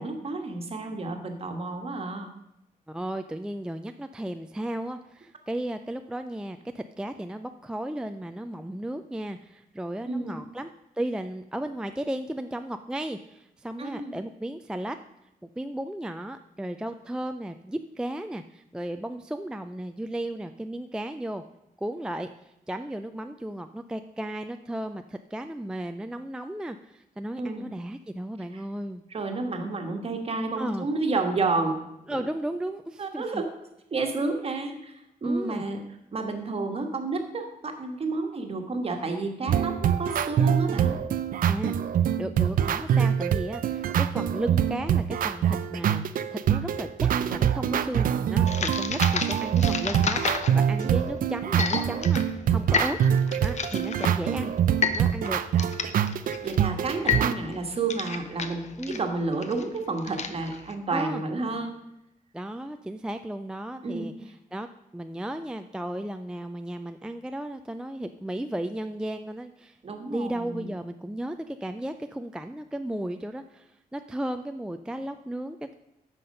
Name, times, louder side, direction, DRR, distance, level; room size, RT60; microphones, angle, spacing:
voice 1, 0.0-2.3 10.0-10.4 13.8-14.2 27.4-27.7 28.5-28.6 29.1-31.8 33.0-33.5 33.9-34.9 35.2-35.8 36.1-40.9 50.8-51.0 56.4-61.7 63.8-64.1 69.8-70.7, right 3 dB, 40° right, 4 dB, 1.4 m, -30 dB
voice 2, 2.9-15.0 15.4-21.4 21.8-29.0 30.6-30.9 32.1-33.4 35.2-35.6 41.5-41.8 42.2-53.0 53.4-54.5 54.9-55.4 58.8-59.0 60.9-61.2 62.3-64.1 64.5-64.7 64.9-69.8 70.1-75.7, right 1 dB, 5° right, 7 dB, 0.3 m, -34 dB
sound 1, 39.5-57.3, right 9 dB, 65° right, 0.5 m, -25 dB
sound 2, 48.5-60.7, left 5 dB, 50° left, 0.8 m, -31 dB
9.2 x 6.0 x 5.3 m, 0.85 s
cardioid pair, 110°, 15 cm